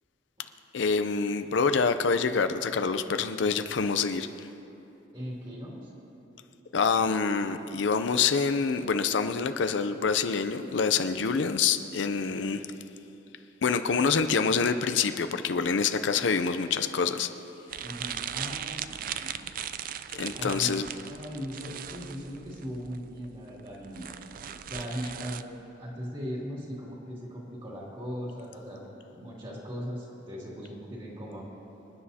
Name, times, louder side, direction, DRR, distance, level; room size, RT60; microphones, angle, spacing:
voice 1, 0.7-4.5 6.7-12.6 13.6-17.3 20.1-20.9, left 5 dB, 75° left, 9 dB, 0.5 m, -26 dB
voice 2, 5.1-5.9 17.8-19.3 20.3-20.8 21.1-24.2 24.7-31.5, equal, 30° right, -5 dB, 2.6 m, -38 dB
sound 1, 17.7-25.4, right 9 dB, 45° right, 0.4 m, -39 dB
26.0 x 9.8 x 2.8 m, 2.9 s
head